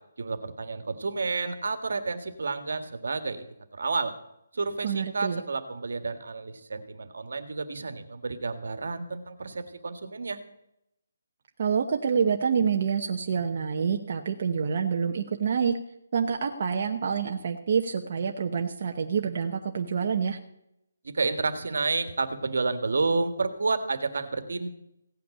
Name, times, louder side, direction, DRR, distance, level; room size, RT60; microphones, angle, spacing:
voice 1, 0.2-3.5 3.8-4.1 4.5-10.4 21.1-24.7, right 3 dB, 70° right, 9 dB, 1.7 m, -30 dB
voice 2, 4.8-5.4 11.6-15.8 16.1-20.4, right 6 dB, 40° right, 3 dB, 0.9 m, -27 dB
16.5 x 5.9 x 9.9 m, 0.82 s
hypercardioid pair, 175°, 0 cm